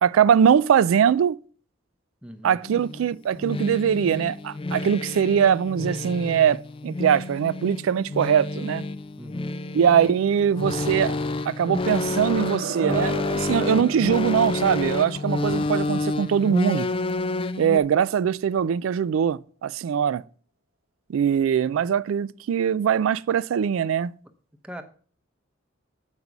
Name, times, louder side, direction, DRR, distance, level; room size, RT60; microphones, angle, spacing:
voice 1, 0.0-1.4 2.4-8.8 9.7-11.2 11.5-16.9 17.6-20.2 21.1-24.1, right 8 dB, 90° right, 0.3 m, -22 dB
voice 2, 2.2-2.6 9.2-9.5 24.6-24.8, equal, 5° right, 0.7 m, -40 dB
sound 1, 2.6-17.8, left 2 dB, 25° left, 0.3 m, -29 dB
sound 2, 12.2-17.0, right 4 dB, 65° right, 0.9 m, -37 dB
8.0 x 5.3 x 6.0 m
head